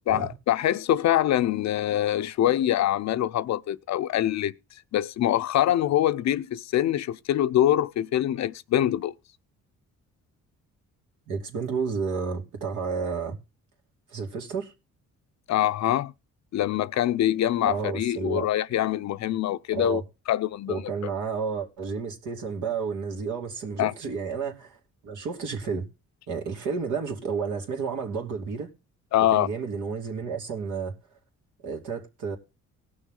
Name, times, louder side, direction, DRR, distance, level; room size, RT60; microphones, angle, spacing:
voice 1, 0.1-4.5 4.9-9.1 15.5-16.1 16.5-20.0 20.3-21.1 23.8-23.9 29.1-29.5, left 12 dB, 65° left, 0.6 m, -24 dB
voice 2, 11.3-13.4 14.1-14.7 17.6-18.5 19.7-20.0 20.7-24.8 25.0-25.8 26.3-28.7 29.3-30.9 31.6-32.4, right 5 dB, 80° right, 2.7 m, -31 dB
19.0 x 6.4 x 3.8 m
cardioid pair, 90°, 30 cm